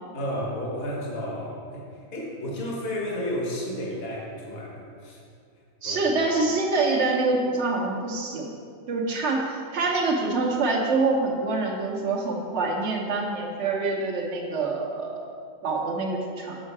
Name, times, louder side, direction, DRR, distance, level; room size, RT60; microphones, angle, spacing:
voice 1, 0.1-1.8 2.1-5.2 5.8-6.0, equal, 45° left, -2 dB, 1.4 m, -32 dB
voice 2, 5.8-8.5 8.9-15.3 15.6-16.6, right 3 dB, 55° right, 0 dB, 1.3 m, -26 dB
6.5 x 6.4 x 4.7 m, 2.3 s
omnidirectional pair, 1.5 m